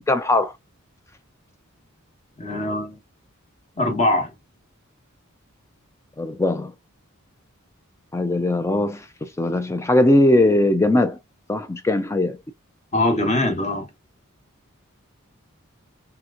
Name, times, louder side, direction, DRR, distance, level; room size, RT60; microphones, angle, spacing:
voice 1, 0.1-0.5 6.2-6.7 8.1-11.2 11.5-12.4, left 1 dB, 15° left, 0.4 m, -20 dB
voice 2, 2.4-3.0 3.8-4.3 12.9-13.9, left 1 dB, 30° left, 1.0 m, -22 dB
3.4 x 2.9 x 2.4 m
head